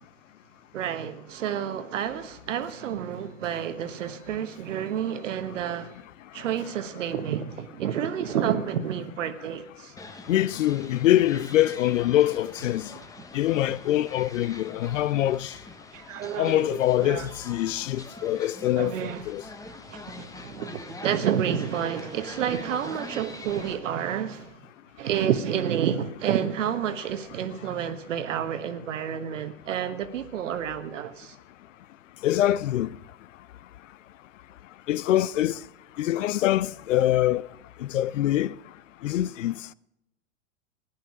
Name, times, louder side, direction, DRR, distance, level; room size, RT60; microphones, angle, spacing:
voice 1, 0.7-6.0 6.3-9.9 15.9-17.3 18.8-19.2 19.9-24.5 25.0-31.3, right 9 dB, 75° right, 1.2 m, -29 dB
sound 1, 10.0-23.7, left 2 dB, 10° left, 1.0 m, -44 dB
voice 2, 10.3-12.9 13.3-15.5 16.4-19.4 32.2-32.9 34.9-35.6 36.0-37.4 37.8-38.5 39.0-39.5, left 13 dB, 80° left, 0.5 m, -24 dB
15.0 x 10.5 x 4.8 m
hypercardioid pair, 100°, 38 cm